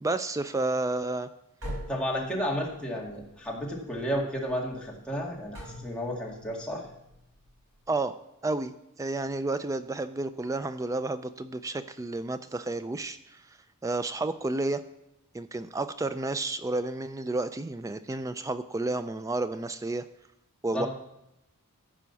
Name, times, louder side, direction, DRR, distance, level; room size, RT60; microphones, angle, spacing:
voice 1, 0.0-1.3 7.9-8.2 8.4-13.4 13.8-14.8 15.3-20.0 20.6-20.9, right 2 dB, 15° right, 11 dB, 0.3 m, -31 dB
sound 1, 1.6-7.9, equal, 70° right, 5.2 m, -44 dB
voice 2, 1.9-6.8 20.7-20.9, equal, 5° left, -3 dB, 2.1 m, -32 dB
14.0 x 5.1 x 7.0 m, 0.86 s
head